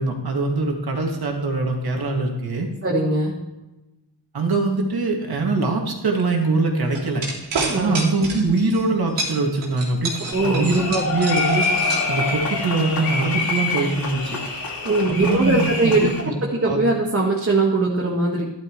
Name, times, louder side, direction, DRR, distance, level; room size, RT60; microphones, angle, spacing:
voice 1, 0.0-2.7 4.3-7.2 7.7-11.7 12.1-14.4 15.1-16.3 16.6-16.8, right 3 dB, 60° right, 1 dB, 2.6 m, -23 dB
voice 2, 2.8-3.4 7.7-7.9 10.3-10.7 14.9-18.5, right 2 dB, 30° right, -2 dB, 1.8 m, -21 dB
sound 1, 6.9-8.8 9.2-12.6, right 3 dB, 85° right, 3.4 m, -28 dB
sound 2, 10.3-16.2, left 3 dB, 55° left, 2.9 m, -26 dB
12.5 x 11.5 x 3.3 m, 1.0 s
cardioid pair, 80°, 42 cm